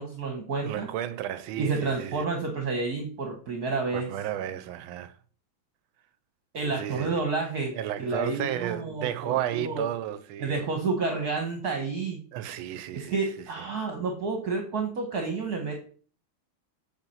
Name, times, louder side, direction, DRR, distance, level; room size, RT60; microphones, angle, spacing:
voice 1, 0.0-0.9 1.6-4.1 6.5-7.7 8.0-9.8 10.4-12.2 12.9-15.8, right 4 dB, 55° right, 1.5 m, -30 dB
voice 2, 0.6-2.3 3.9-5.1 6.7-7.2 7.7-10.6 12.3-13.6, right 11 dB, 85° right, 1.4 m, -33 dB
8.1 x 4.6 x 5.5 m
omnidirectional pair, 2.2 m